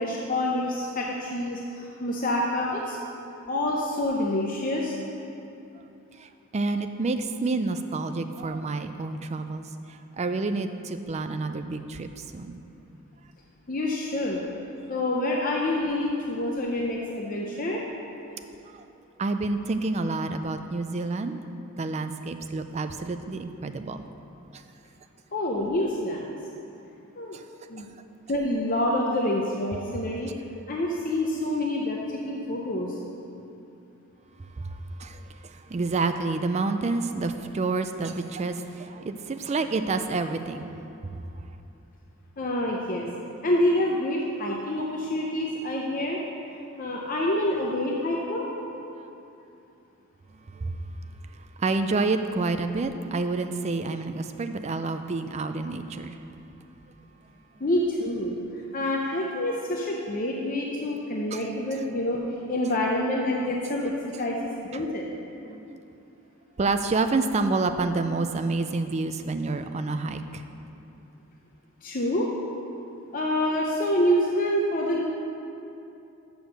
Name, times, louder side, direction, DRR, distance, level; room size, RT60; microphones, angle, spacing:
voice 1, 0.0-3.0 3.5-5.0 13.7-14.4 14.9-17.8 25.3-26.4 27.2-27.4 27.7-27.9 28.3-30.3 30.7-33.0 42.4-43.1 43.4-46.2 46.8-48.5 57.6-58.4 58.7-62.2 62.5-65.1 71.8-72.3 73.1-75.0, left 1 dB, 40° left, -2 dB, 0.6 m, -27 dB
voice 2, 6.1-12.6 18.6-18.8 19.2-21.4 21.8-24.0 24.5-24.6 27.3-27.4 27.8-28.0 34.4-40.7 41.0-41.6 50.5-50.9 51.3-56.2 61.3-61.5 63.6-63.7 64.1-64.3 64.7-64.8 65.3-65.8 66.6-70.4, right 3 dB, 30° right, 8 dB, 0.4 m, -29 dB
7.0 x 6.3 x 6.4 m, 2.7 s
head